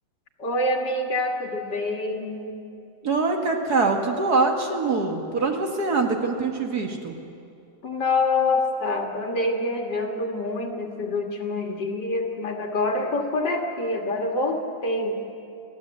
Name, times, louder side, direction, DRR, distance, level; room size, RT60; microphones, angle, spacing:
voice 1, 0.4-2.5 7.8-15.2, left 2 dB, 65° left, 1 dB, 2.3 m, -26 dB
voice 2, 3.0-7.2, right 3 dB, 55° right, 3 dB, 2.1 m, -24 dB
29.5 x 12.0 x 8.1 m, 2.6 s
omnidirectional pair, 2.0 m